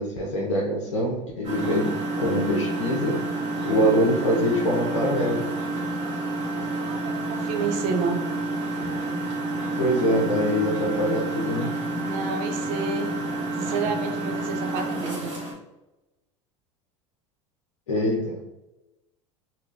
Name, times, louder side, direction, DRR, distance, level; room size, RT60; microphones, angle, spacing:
voice 1, 0.0-3.2 3.6-5.5 9.5-11.8 17.9-18.4, equal, 80° left, -3 dB, 0.7 m, -24 dB
Engine, 1.4-15.5, right 2 dB, 85° right, 1.4 m, -29 dB
voice 2, 6.7-8.3 12.0-13.1 13.5-15.3, right 5 dB, 60° right, 5 dB, 0.6 m, -30 dB
3.0 x 2.8 x 2.5 m, 1.0 s
hypercardioid pair, 80°, 16 cm